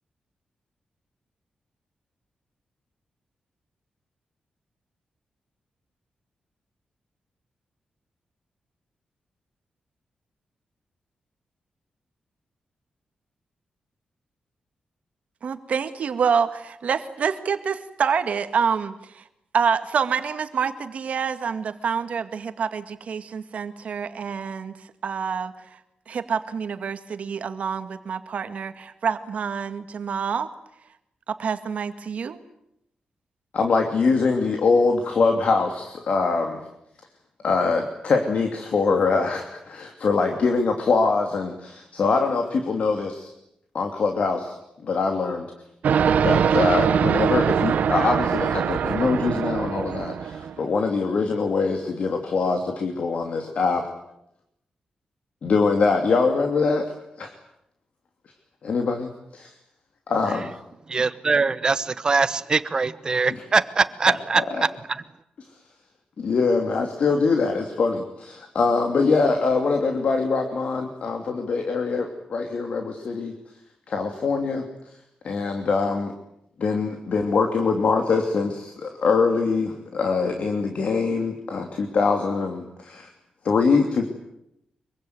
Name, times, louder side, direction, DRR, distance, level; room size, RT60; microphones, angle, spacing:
voice 1, 15.4-19.2 19.5-24.7 25.0-25.5 26.1-30.5 31.4-32.4, right 6 dB, 60° right, 2.0 m, -27 dB
voice 2, 33.5-36.6 37.4-43.3 43.7-44.6 44.8-45.5 46.2-53.8 55.4-56.9 57.2-57.3 58.6-59.5 60.1-60.5 66.2-73.3 73.9-74.6 75.2-76.1 76.6-83.1 83.4-84.1, left 4 dB, 55° left, 2.9 m, -23 dB
sound 1, 45.8-50.6, right 7 dB, 80° right, 1.0 m, -22 dB
voice 3, 60.9-65.0, right 4 dB, 30° right, 1.0 m, -23 dB
25.0 x 23.5 x 9.6 m
wide cardioid pair, 165°, 3 cm